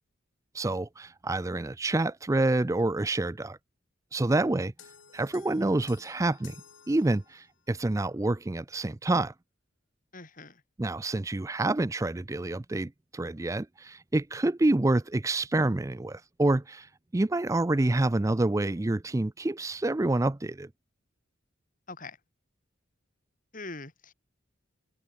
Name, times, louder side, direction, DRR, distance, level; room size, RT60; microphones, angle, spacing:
voice 1, 0.5-3.6 4.1-4.7 5.1-6.6 6.9-9.3 10.8-20.7, right 2 dB, 15° right, 0.4 m, -27 dB
sound 1, 4.8-7.7, left 7 dB, 75° left, 7.2 m, -54 dB
voice 2, 10.1-10.6 21.9-22.2 23.5-24.1, left 3 dB, 45° left, 4.6 m, -42 dB
head